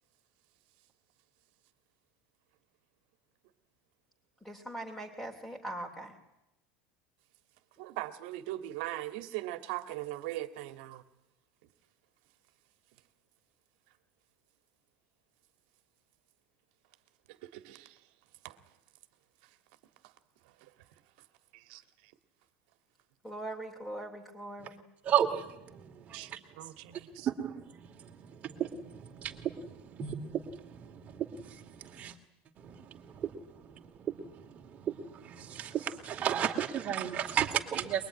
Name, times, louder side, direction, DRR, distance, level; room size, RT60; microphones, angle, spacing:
voice 1, 4.4-6.2 7.8-7.9 23.2-24.8, right 1 dB, ahead, 2.9 m, -41 dB
voice 2, 7.8-11.0 17.3-18.0 18.4-18.6 20.0-20.1 20.6-20.7 21.5-22.1 26.1-27.3, right 15 dB, 60° right, 2.0 m, -40 dB
voice 3, 25.0-26.4 27.2-32.1 32.6-33.3 33.6-38.1, right 9 dB, 25° right, 2.6 m, -34 dB
23.0 x 22.5 x 9.9 m
supercardioid pair, 170°, 6 cm